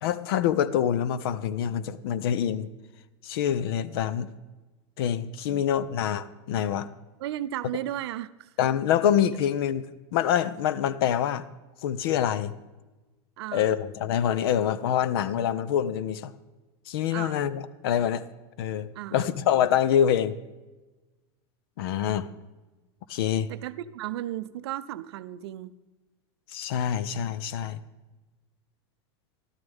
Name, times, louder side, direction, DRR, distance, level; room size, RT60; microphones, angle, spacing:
voice 1, 0.0-2.7 3.2-4.3 5.0-6.9 8.6-9.8 10.1-11.4 11.8-12.5 13.5-16.3 16.9-18.2 18.6-20.4 21.8-22.3 23.1-23.5 26.5-27.8, left 9 dB, 60° left, 16 dB, 0.6 m, -26 dB
voice 2, 5.5-5.9 7.2-8.5 13.4-13.8 17.1-17.5 18.9-19.3 23.5-25.7, right 13 dB, 65° right, 13 dB, 0.5 m, -35 dB
13.5 x 12.5 x 3.5 m, 1.2 s
supercardioid pair, 170°, 14 cm